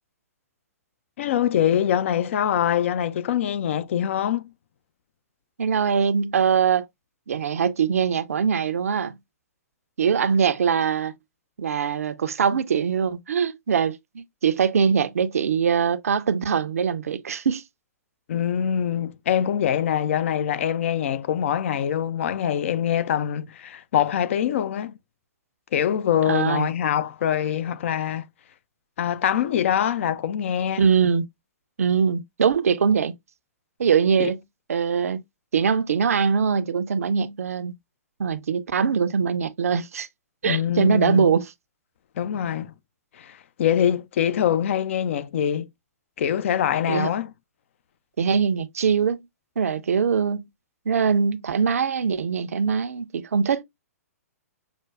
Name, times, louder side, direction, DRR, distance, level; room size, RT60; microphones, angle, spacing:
voice 1, 1.2-4.5 18.3-24.9 25.7-28.3 29.0-30.8 34.2-34.3 40.4-41.3 42.2-42.7 43.2-45.7 46.2-47.3, left 9 dB, 55° left, 0.4 m, -24 dB
voice 2, 5.6-6.9 7.3-9.2 10.0-11.1 11.6-17.6 26.3-26.7 30.8-31.3 31.8-33.1 33.8-34.4 34.7-35.2 35.5-37.7 38.2-40.1 40.4-41.5 46.9-47.1 48.2-49.2 49.6-50.5 50.9-53.6, right 6 dB, 70° right, 0.5 m, -22 dB
5.9 x 2.2 x 2.2 m
figure-of-eight pair, 120°, 8 cm